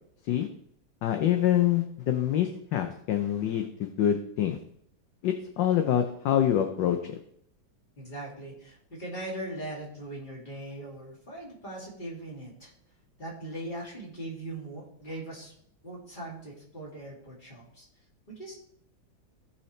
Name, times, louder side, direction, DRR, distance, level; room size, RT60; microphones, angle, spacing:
voice 1, 1.0-4.6 5.2-7.2, left 10 dB, 70° left, 6 dB, 1.3 m, -26 dB
voice 2, 8.0-12.7 13.2-15.5 15.8-17.9 18.3-18.5, right 1 dB, 25° left, -3 dB, 2.7 m, -40 dB
16.5 x 5.7 x 3.3 m, 0.68 s
omnidirectional pair, 2.2 m